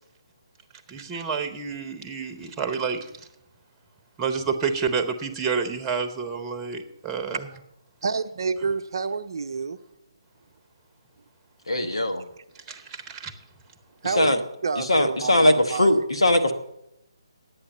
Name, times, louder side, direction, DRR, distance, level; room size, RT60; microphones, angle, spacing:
voice 1, 0.9-3.1 4.2-7.5 12.5-13.3, right 5 dB, 15° right, 7 dB, 1.0 m, -29 dB
voice 2, 8.0-9.8 14.0-16.0, right 5 dB, 55° right, 9 dB, 0.6 m, -29 dB
voice 3, 11.7-12.2 14.1-14.4 14.8-16.5, left 1 dB, 85° left, 7 dB, 1.4 m, -20 dB
10.0 x 8.8 x 7.3 m, 0.83 s
figure-of-eight pair, 145°, 3 cm